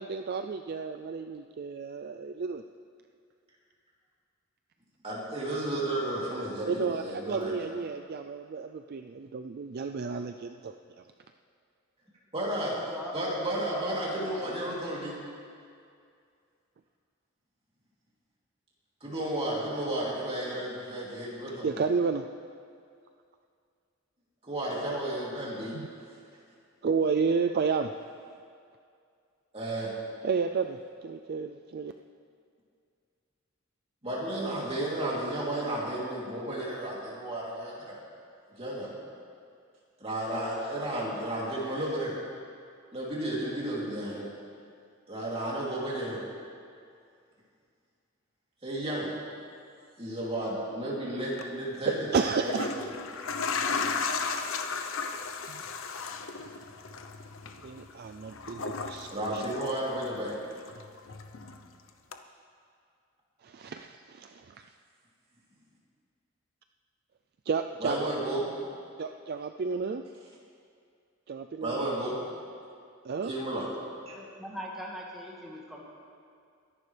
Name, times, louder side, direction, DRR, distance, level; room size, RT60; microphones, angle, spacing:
voice 1, 0.0-2.6 6.7-10.7 21.6-22.2 25.7-25.9 26.8-27.9 30.2-31.9 51.8-52.7 55.5-55.6 57.6-59.5 63.4-64.6 67.5-68.1 69.0-70.0 71.3-71.9 73.0-73.3, right 5 dB, 50° right, 6 dB, 0.4 m, -31 dB
voice 2, 5.0-7.6 12.3-12.7 13.1-15.2 19.0-21.7 24.4-25.8 29.5-29.9 34.0-38.0 38.6-38.9 40.0-42.2 42.9-44.3 45.1-46.2 48.6-49.1 50.0-52.0 52.3-52.8 59.1-60.4 67.8-68.4 71.6-72.2 73.2-73.7 74.1-74.2, right 1 dB, 30° right, -6 dB, 3.1 m, -33 dB
voice 3, 12.6-13.2 13.7-13.9 14.2-14.8 74.1-75.8, equal, ahead, -5 dB, 1.8 m, -42 dB
sound 1, 51.2-51.4 52.3-60.3 60.6-61.7 62.1-62.2, left 4 dB, 70° left, 0.8 m, -35 dB
22.5 x 11.0 x 3.4 m, 2.3 s
head